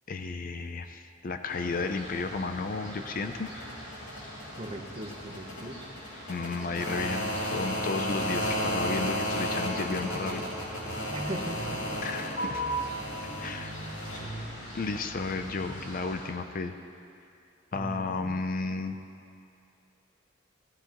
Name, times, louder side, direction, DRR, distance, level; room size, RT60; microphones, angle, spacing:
voice 1, 0.1-3.5 6.3-10.4 12.0-12.6 13.4-13.8 14.7-16.7 17.7-19.0, left 3 dB, 45° left, 8 dB, 0.5 m, -33 dB
sound 1, 1.5-16.3, equal, 70° left, 2.9 m, -34 dB
voice 2, 4.5-5.9 8.1-8.6 11.1-12.3 17.7-18.4, right 1 dB, 30° right, 2 dB, 1.0 m, -40 dB
16.0 x 13.5 x 3.0 m, 2.6 s
head